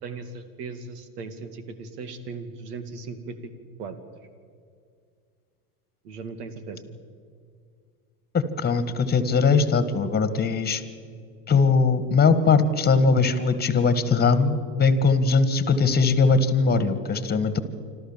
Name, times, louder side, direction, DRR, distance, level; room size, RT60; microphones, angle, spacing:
voice 1, 0.0-3.5 3.8-4.0 6.0-6.8, right 4 dB, 80° right, 10 dB, 2.3 m, -37 dB
voice 2, 8.3-10.8 11.5-17.6, left 4 dB, 20° left, 12 dB, 1.8 m, -20 dB
26.5 x 13.0 x 7.4 m, 2.2 s
supercardioid pair, 105°, 46 cm